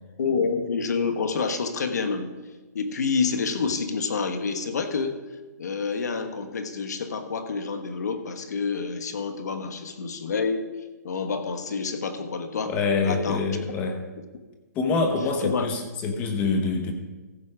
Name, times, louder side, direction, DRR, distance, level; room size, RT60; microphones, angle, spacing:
voice 1, 0.2-2.3 2.7-5.2 5.6-10.7 11.0-12.7 13.0-13.4 15.4-15.7, left 5 dB, 70° left, 7 dB, 1.4 m, -28 dB
voice 2, 12.6-14.0 14.7-16.9, left 4 dB, 15° left, 5 dB, 1.0 m, -25 dB
15.0 x 6.9 x 4.9 m, 1.2 s
hypercardioid pair, 165°, 9 cm